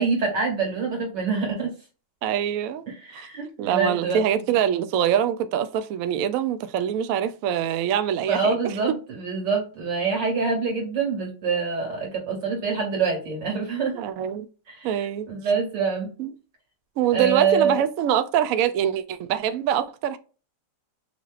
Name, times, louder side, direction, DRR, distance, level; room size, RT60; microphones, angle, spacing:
voice 1, 0.0-1.7 2.9-4.2 8.3-14.0 14.7-16.1 17.1-17.8, right 5 dB, 65° right, 2.5 m, -25 dB
voice 2, 2.2-2.8 3.1-3.3 3.6-8.7 14.0-14.5 14.8-15.3 16.2-16.3 17.0-20.2, right 9 dB, 85° right, 0.7 m, -24 dB
5.6 x 3.0 x 2.4 m
omnidirectional pair, 2.0 m